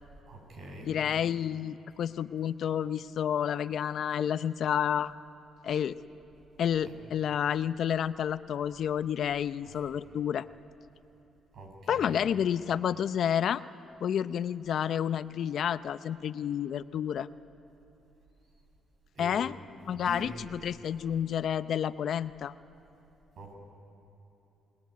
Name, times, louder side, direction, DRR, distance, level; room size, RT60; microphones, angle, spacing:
voice 1, 0.3-0.9 6.8-6.9 11.5-12.2 19.1-19.4 19.9-20.3 23.4-23.5, right 1 dB, 60° right, 2 dB, 7.6 m, -44 dB
voice 2, 0.8-5.1 5.6-6.0 6.6-10.5 11.9-13.6 14.0-17.3 19.2-19.6 19.9-22.5, left 9 dB, 65° left, 13 dB, 0.7 m, -30 dB
29.0 x 21.0 x 9.5 m, 3.0 s
cardioid pair, 90°, 0 cm